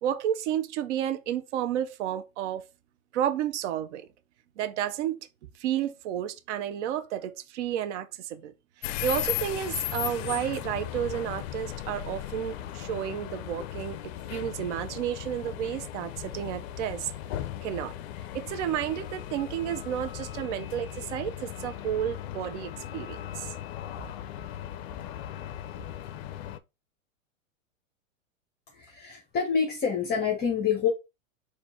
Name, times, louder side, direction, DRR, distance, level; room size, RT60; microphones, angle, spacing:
voice 1, 0.0-2.6 3.1-4.1 4.6-5.3 5.6-8.5 8.8-14.0 14.3-17.1 17.6-17.9 18.3-23.5, right 10 dB, 60° right, 0.7 m, -31 dB
sound 1, 8.8-26.6, left 12 dB, 50° left, 0.5 m, -37 dB
voice 2, 28.7-30.9, left 7 dB, 25° left, 1.1 m, -27 dB
4.3 x 2.5 x 4.3 m
hypercardioid pair, 120°, 40 cm